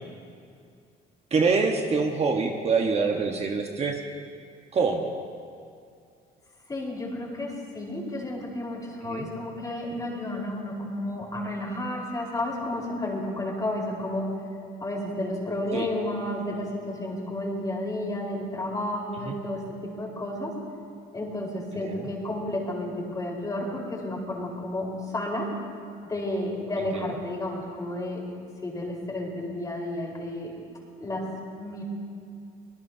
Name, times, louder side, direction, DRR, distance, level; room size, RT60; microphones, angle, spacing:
voice 1, 1.3-4.0 4.7-5.1 9.0-9.3 15.7-15.9 19.2-19.4 21.8-22.1 26.9-27.1, right 4 dB, 40° right, 2 dB, 1.3 m, -25 dB
voice 2, 6.7-14.4 14.8-20.5 21.1-25.5 26.0-28.2 28.6-30.5 31.0-31.3 31.6-31.8, left 1 dB, 20° left, -2 dB, 4.4 m, -32 dB
25.5 x 20.0 x 2.8 m, 2.4 s
cardioid pair, 110°, 17 cm